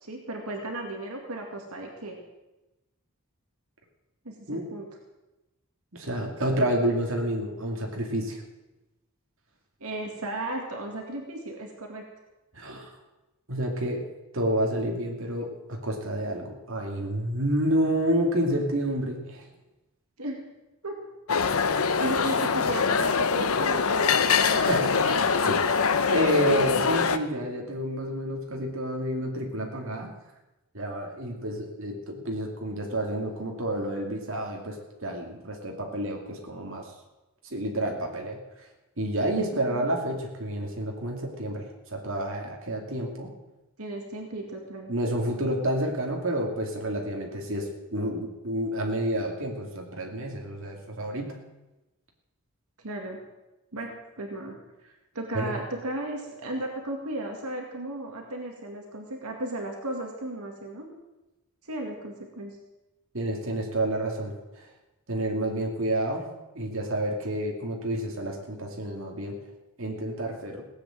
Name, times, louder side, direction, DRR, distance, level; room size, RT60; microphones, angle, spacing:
voice 1, 0.0-2.2 4.2-4.9 9.8-12.0 20.2-20.4 20.8-21.0 22.0-25.2 39.5-39.8 43.8-44.9 52.8-53.2 53.7-53.9 54.2-54.6 55.1-60.9 61.6-62.6, right 1 dB, 85° right, 2 dB, 2.2 m, -35 dB
voice 2, 5.9-8.4 12.5-12.9 13.5-14.0 14.3-19.5 24.3-30.1 30.7-36.9 37.5-38.4 39.0-43.3 44.9-51.4 55.3-55.6 63.1-64.7 65.1-66.3 66.5-69.4 69.8-70.7, right 1 dB, 60° right, 0 dB, 2.5 m, -29 dB
sound 1, 21.3-27.2, left 5 dB, 75° left, 0.8 m, -23 dB
17.0 x 8.6 x 7.7 m, 1.0 s
head